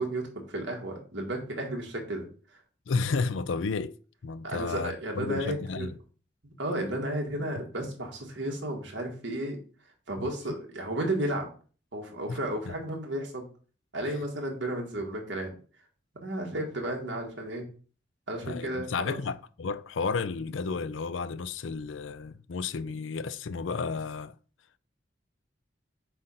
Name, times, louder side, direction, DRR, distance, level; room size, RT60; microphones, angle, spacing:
voice 1, 0.0-2.3 4.4-5.9 6.4-9.6 10.1-11.5 11.9-13.5 13.9-15.6 16.2-17.7 18.3-19.2, right 1 dB, 70° right, 1.9 m, -33 dB
voice 2, 2.9-4.0 4.2-6.0 10.2-10.3 12.3-12.4 18.4-24.3, left 4 dB, 85° left, 0.5 m, -32 dB
7.7 x 2.6 x 5.7 m
head